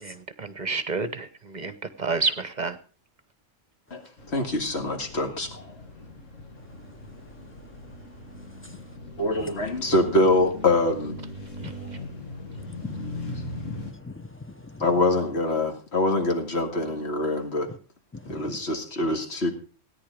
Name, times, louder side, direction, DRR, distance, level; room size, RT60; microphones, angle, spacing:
voice 1, 0.0-1.7 2.0-2.8 11.6-11.7, right 4 dB, 40° right, 1.0 m, -29 dB
sound 1, 4.2-13.9, left 2 dB, 85° left, 2.5 m, -39 dB
voice 2, 4.3-5.7 9.2-11.2 14.8-17.7 18.3-19.5, left 2 dB, 55° left, 2.4 m, -24 dB
voice 3, 13.2-14.9 18.1-18.6, left 3 dB, 10° left, 0.7 m, -41 dB
17.0 x 9.9 x 5.1 m
omnidirectional pair, 1.3 m